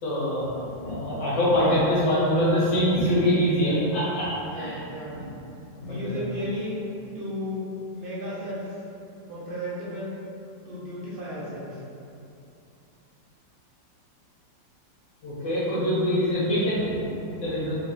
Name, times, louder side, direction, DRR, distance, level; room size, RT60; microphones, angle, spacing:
voice 1, 0.0-4.8 5.0-5.3 5.8-6.3 11.5-11.6 15.2-17.8, equal, 80° left, -9 dB, 2.0 m, -24 dB
voice 2, 4.5-5.2 5.8-6.8 7.1-7.7 7.9-8.8 9.3-10.2 10.6-11.8, equal, 65° right, -8 dB, 0.5 m, -34 dB
4.7 x 3.2 x 2.9 m, 2.8 s
omnidirectional pair, 2.1 m